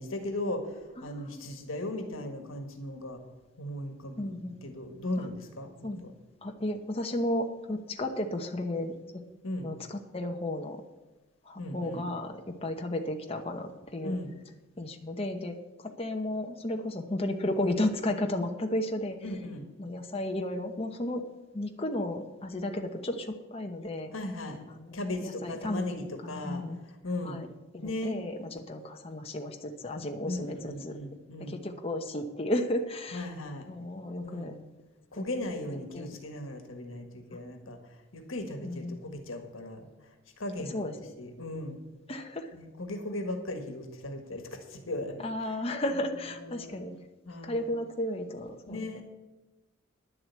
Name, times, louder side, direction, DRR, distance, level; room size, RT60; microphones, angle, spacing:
voice 1, 0.0-3.2 3.6-6.1 9.4-9.7 11.6-12.1 14.0-14.3 19.2-19.7 24.1-24.6 24.9-27.4 27.8-28.3 30.2-31.6 33.1-33.7 34.2-34.5 35.1-41.8 42.5-45.6 45.9-46.8 47.2-47.7 48.7-49.0, left 1 dB, 80° left, 5 dB, 1.6 m, -37 dB
voice 2, 1.0-1.4 4.2-4.5 5.2-5.3 5.8-6.0 6.4-8.9 9.6-10.8 11.4-14.2 14.8-19.2 19.8-21.3 21.5-24.1 24.7-26.0 26.2-26.8 27.2-27.5 27.7-30.9 31.4-33.3 33.7-34.5 35.1-35.2 35.9-36.2 38.6-39.1 40.6-41.1 42.1-42.5 45.2-46.9 47.4-49.0, left 1 dB, 30° left, 4 dB, 0.9 m, -33 dB
10.5 x 7.7 x 8.2 m, 1.1 s
head